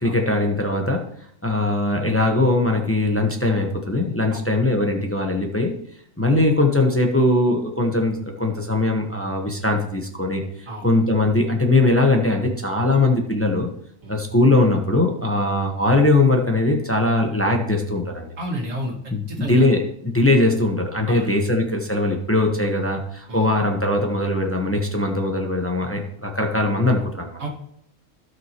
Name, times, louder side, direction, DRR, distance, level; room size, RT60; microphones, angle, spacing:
voice 1, 0.0-1.0 1.4-5.7 6.2-13.7 14.1-18.3 19.1-27.4, left 2 dB, 10° left, 2 dB, 1.0 m, -20 dB
voice 2, 18.4-19.7 21.1-21.3 23.3-23.5 27.4-27.5, equal, 90° right, 0 dB, 2.3 m, -30 dB
16.0 x 6.0 x 3.0 m, 0.69 s
omnidirectional pair, 1.3 m